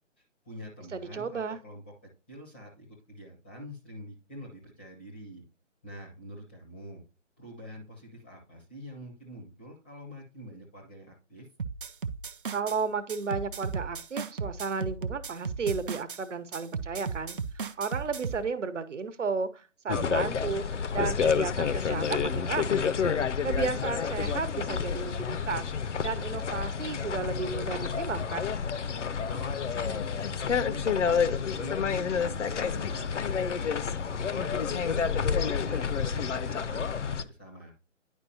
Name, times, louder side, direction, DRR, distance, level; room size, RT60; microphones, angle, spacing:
voice 1, 0.2-5.4 5.8-7.0 7.4-11.5 28.8-31.2 31.6-33.9 34.3-37.7, equal, 10° left, -2 dB, 0.6 m, -46 dB
voice 2, 0.9-1.6 12.5-23.0 23.4-25.6 26.0-28.5, right 5 dB, 70° right, 11 dB, 1.0 m, -33 dB
sound 1, 11.6-12.8 13.1-16.2 16.5-18.5, right 5 dB, 45° right, 0.4 m, -35 dB
sound 2, 19.9-37.2, left 6 dB, 65° left, 0.6 m, -29 dB
10.0 x 4.8 x 2.8 m, 0.33 s
figure-of-eight pair, 145°, 38 cm